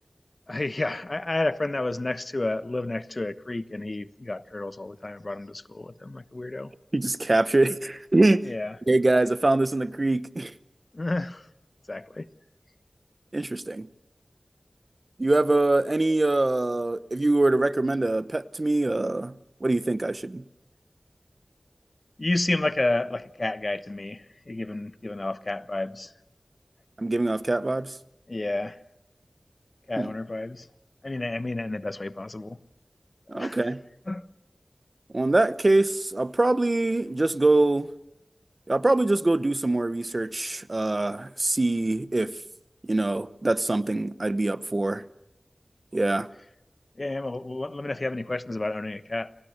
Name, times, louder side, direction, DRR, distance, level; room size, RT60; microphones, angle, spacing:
voice 1, 0.5-6.7 8.4-8.8 10.9-11.5 11.9-12.3 22.2-26.1 28.3-28.8 29.9-30.7 31.0-32.6 33.3-33.6 34.1-34.3 47.0-49.4, left 2 dB, 50° left, 1.1 m, -30 dB
voice 2, 6.9-8.5 8.9-10.5 13.3-13.9 15.2-19.3 19.6-20.4 27.0-27.9 30.0-30.1 33.3-33.8 35.1-37.9 38.7-42.3 42.9-45.0 45.9-46.3, right 2 dB, 45° right, 1.0 m, -24 dB
29.5 x 24.5 x 6.6 m
wide cardioid pair, 65°, 0 cm